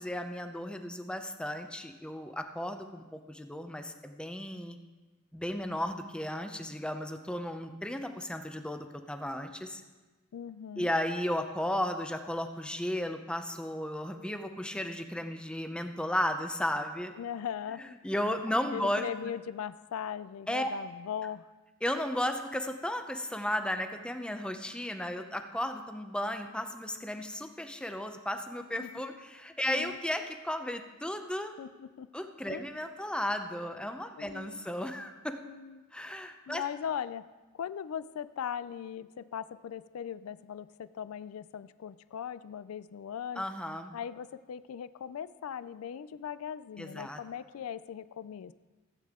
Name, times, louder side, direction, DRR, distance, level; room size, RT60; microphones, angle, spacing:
voice 1, 0.0-4.8 5.3-9.8 10.8-17.1 18.0-19.3 20.5-20.7 21.8-31.5 32.1-35.4 35.9-36.6 43.4-43.9 46.8-47.2, left 1 dB, 5° left, 6 dB, 0.6 m, -34 dB
voice 2, 10.3-10.9 17.2-17.9 18.7-21.5 28.8-28.9 29.6-30.0 31.6-32.1 32.5-32.6 34.2-34.6 35.4-35.8 36.5-37.3 37.5-43.5 43.9-48.5, left 8 dB, 75° left, 15 dB, 0.3 m, -39 dB
15.5 x 8.5 x 3.6 m, 1.2 s
head